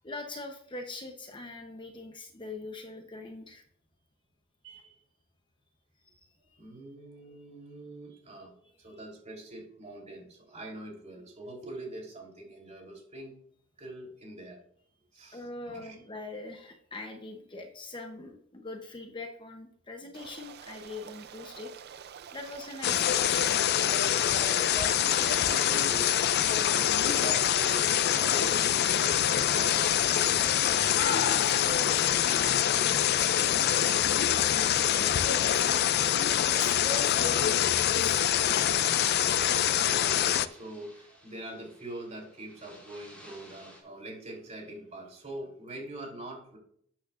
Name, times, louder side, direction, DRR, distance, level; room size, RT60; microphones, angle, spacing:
voice 1, 0.0-3.6 6.0-6.1 6.5-6.6 15.3-21.7 22.3-23.6 31.0-35.8 36.4-39.0, left 2 dB, 25° left, 3 dB, 0.8 m, -42 dB
voice 2, 4.6-5.0 6.6-13.4 13.8-14.6 15.1-16.0 22.4-22.6 24.4-30.1 39.2-46.6, right 1 dB, 35° right, -1 dB, 3.5 m, -44 dB
Stream, 20.1-32.1, right 8 dB, 50° right, 0.5 m, -45 dB
sound 1, 22.8-40.5, left 10 dB, 50° left, 0.4 m, -25 dB
sound 2, 34.8-43.8, equal, 5° left, 3.6 m, -58 dB
12.5 x 8.5 x 2.5 m, 0.65 s
head